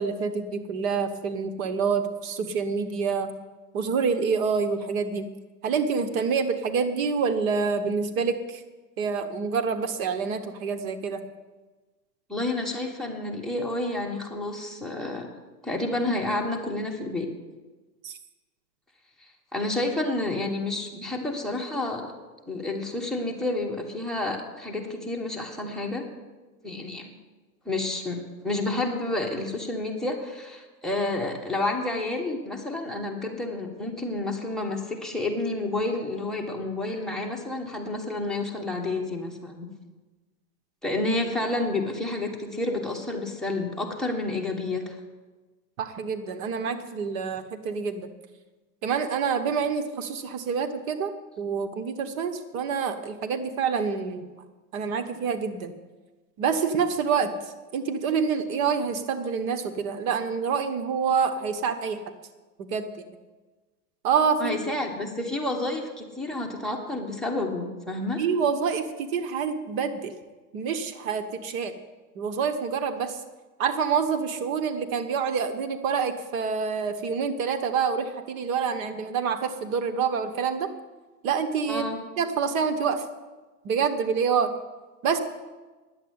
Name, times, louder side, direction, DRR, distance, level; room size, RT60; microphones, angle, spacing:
voice 1, 0.0-3.3 3.7-5.3 5.6-8.6 9.0-11.3 18.0-18.2 45.8-48.1 48.8-54.3 54.7-55.7 56.4-57.3 57.7-62.0 62.6-63.0 64.0-64.6 68.2-70.1 70.5-71.7 72.1-73.2 73.6-80.7 81.2-81.8 82.2-83.0 83.6-84.5 85.0-85.2, right 6 dB, 55° right, 8 dB, 1.3 m, -27 dB
voice 2, 12.3-15.3 15.6-17.3 19.5-22.1 22.5-26.0 26.6-27.1 27.6-39.7 40.8-45.0 64.4-68.2 81.7-82.0, left 2 dB, ahead, 2 dB, 1.5 m, -30 dB
10.5 x 8.0 x 9.5 m, 1.2 s
hypercardioid pair, 130°, 48 cm